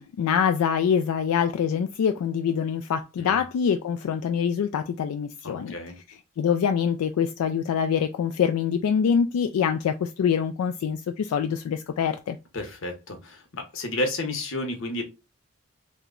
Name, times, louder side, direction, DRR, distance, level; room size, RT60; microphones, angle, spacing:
voice 1, 0.0-5.7 6.1-12.4, left 7 dB, 90° left, 0.3 m, -25 dB
voice 2, 5.4-5.9 12.5-15.0, left 1 dB, 60° left, 0.8 m, -31 dB
2.9 x 2.1 x 3.6 m
head